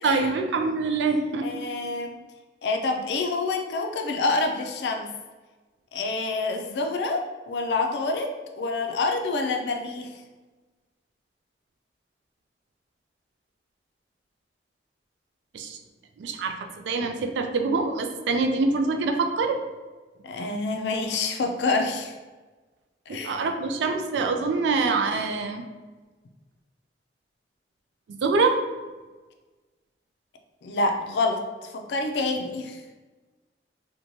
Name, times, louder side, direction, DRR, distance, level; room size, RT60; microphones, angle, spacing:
voice 1, 0.0-1.5 15.5-15.8 16.2-19.6 23.1-25.6 28.1-28.6, right 4 dB, 85° right, 5 dB, 0.3 m, -25 dB
voice 2, 1.4-2.2 2.6-5.1 5.9-8.3 8.6-10.1 20.2-22.1 23.1-23.4 30.6-32.8, left 3 dB, 75° left, 4 dB, 0.4 m, -27 dB
3.0 x 2.2 x 2.6 m, 1.3 s
head